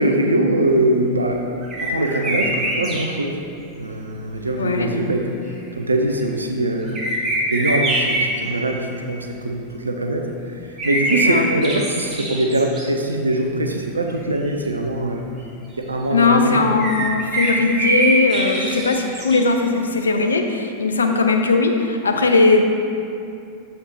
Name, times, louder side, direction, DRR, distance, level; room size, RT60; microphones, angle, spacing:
voice 1, 0.0-1.4 1.8-3.4 3.8-7.0 7.5-15.3 15.8-16.7, right 1 dB, 80° right, 3 dB, 0.5 m, -22 dB
sound 1, 1.6-3.0 6.8-8.2 10.8-12.9 13.4-13.5 14.1-14.2 14.4-14.5 16.8-19.5, right 1 dB, 25° right, 1.3 m, -23 dB
voice 2, 4.6-4.9 11.2-11.4 16.1-22.6, left 3 dB, 75° left, 4 dB, 0.5 m, -18 dB
7.1 x 4.3 x 4.2 m, 2.5 s
figure-of-eight pair, 90°, 0 cm